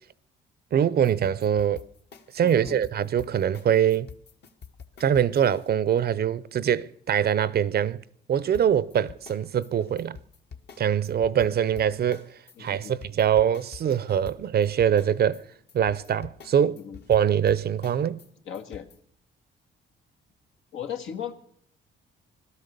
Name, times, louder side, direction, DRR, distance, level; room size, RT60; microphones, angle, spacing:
voice 1, 0.7-1.8 2.3-4.1 5.0-8.0 8.3-10.2 10.8-12.3 12.6-15.4 15.7-16.8 17.1-18.2, right 9 dB, 50° right, 0.6 m, -23 dB
sound 1, 1.0-5.7 8.5-19.0, left 6 dB, 55° left, 1.5 m, -46 dB
voice 2, 2.4-2.8 12.6-12.9 16.6-17.0 18.5-18.9 20.7-21.3, left 8 dB, 80° left, 1.8 m, -37 dB
17.5 x 12.5 x 6.8 m
cardioid pair, 90°, 20 cm